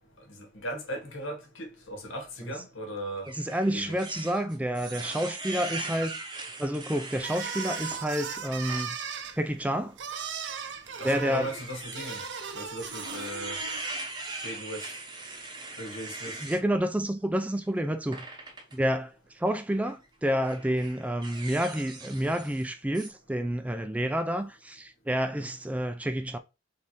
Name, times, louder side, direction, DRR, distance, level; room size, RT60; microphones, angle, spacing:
voice 1, 0.3-3.3 3.7-4.0 11.0-12.2 12.5-13.6 14.4-14.9 15.8-16.4 25.3-25.5, equal, 90° left, 1.4 m, -38 dB
sound 1, 3.2-8.0 8.5-8.9 9.3-9.4 10.5-16.6 18.1-18.7 19.7-19.9 20.4-22.7 22.9-23.1, right 2 dB, 25° right, 0.7 m, -40 dB
voice 2, 3.3-6.2 6.6-9.0 9.4-10.0 11.0-11.5 16.4-18.3 18.7-26.4, equal, 5° right, 0.3 m, -29 dB
sound 2, 7.2-13.8, right 6 dB, 65° right, 0.6 m, -37 dB
3.5 x 3.2 x 4.1 m
head